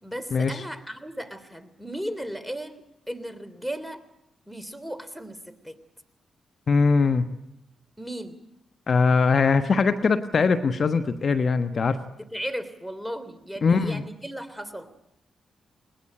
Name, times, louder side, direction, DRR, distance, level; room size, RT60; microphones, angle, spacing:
voice 1, 0.0-4.0 4.5-5.8 8.0-8.4 12.2-14.9, equal, ahead, 13 dB, 3.2 m, -36 dB
voice 2, 6.7-7.3 8.9-12.0 13.6-14.0, left 4 dB, 55° left, 11 dB, 1.2 m, -21 dB
21.0 x 19.5 x 9.0 m, 0.81 s
hypercardioid pair, 40°, 0 cm